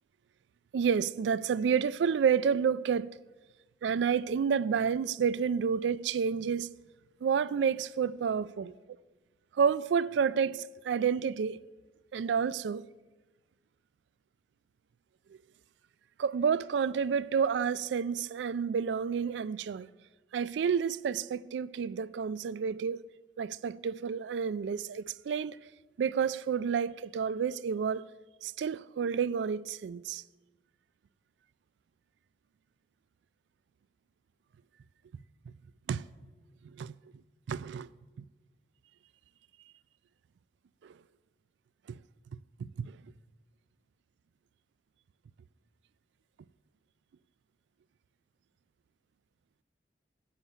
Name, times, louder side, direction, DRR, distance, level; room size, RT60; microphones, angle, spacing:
voice 1, 0.7-3.1 3.8-6.7 7.2-8.7 9.6-11.6 12.1-12.9 16.2-19.9 20.3-23.0 23.4-25.6 26.0-28.1 28.4-30.2 35.5-35.6 35.9-36.1 36.6-36.9 37.5-37.9 40.8-41.0 41.9-42.0 42.6-43.0, right 6 dB, 90° right, 0.3 m, -30 dB
8.1 x 7.3 x 8.3 m
head